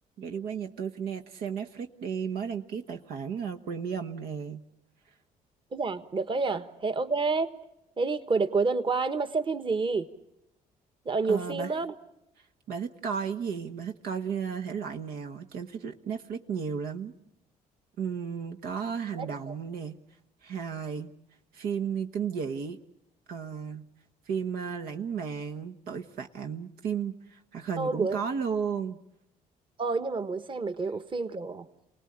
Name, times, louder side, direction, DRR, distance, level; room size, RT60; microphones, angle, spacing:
voice 1, 0.2-4.6 11.3-11.7 12.7-17.1 18.0-20.0 20.4-21.1 21.5-22.8 23.3-23.8 24.3-29.0, right 6 dB, 80° right, 6 dB, 1.3 m, -34 dB
voice 2, 5.7-7.6 8.0-10.1 11.0-11.9 19.2-19.5 27.8-28.2 29.8-31.7, right 4 dB, 35° right, 10 dB, 1.4 m, -29 dB
28.5 x 19.0 x 8.7 m, 0.87 s
cardioid pair, 80°, 15 cm